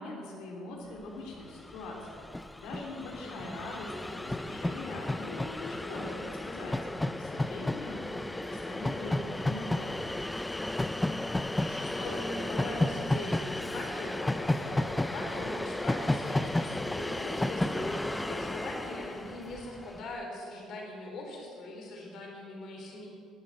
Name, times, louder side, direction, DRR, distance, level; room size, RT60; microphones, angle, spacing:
voice 1, 0.0-2.2 2.5-8.0 8.3-10.1, left 2 dB, 85° left, -1 dB, 3.1 m, -42 dB
Train, 1.3-1.4 1.6-20.0, left 1 dB, 5° left, 0.4 m, -33 dB
voice 2, 11.6-23.1, left 1 dB, 45° left, 0 dB, 3.9 m, -41 dB
20.0 x 9.2 x 7.6 m, 2.5 s
cardioid pair, 180°, 0 cm